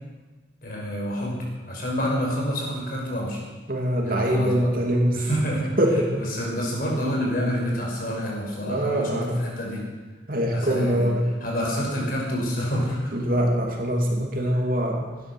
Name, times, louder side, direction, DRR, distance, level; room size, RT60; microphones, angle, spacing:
voice 1, 0.6-3.4 4.0-4.7 5.1-5.7 6.2-9.8 10.5-11.1 11.4-13.1, equal, 50° left, -2 dB, 5.6 m, -28 dB
voice 2, 3.7-5.2 5.8-6.2 8.6-9.4 10.3-11.3 13.1-15.1, equal, 50° right, 1 dB, 2.8 m, -23 dB
18.0 x 12.5 x 6.2 m, 1.2 s
head